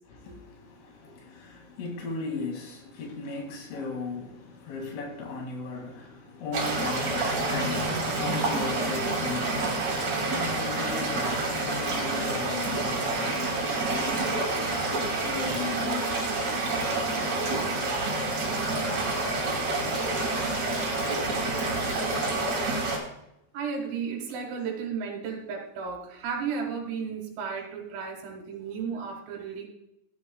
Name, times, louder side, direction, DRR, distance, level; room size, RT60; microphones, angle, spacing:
voice 1, 0.1-16.2, left 3 dB, 75° left, 1 dB, 4.8 m, -37 dB
sound 1, 6.5-23.0, right 2 dB, 40° right, 3.1 m, -28 dB
voice 2, 13.7-15.7 23.5-29.7, right 6 dB, 85° right, 0 dB, 4.5 m, -35 dB
15.5 x 10.5 x 2.3 m, 0.80 s
omnidirectional pair, 5.8 m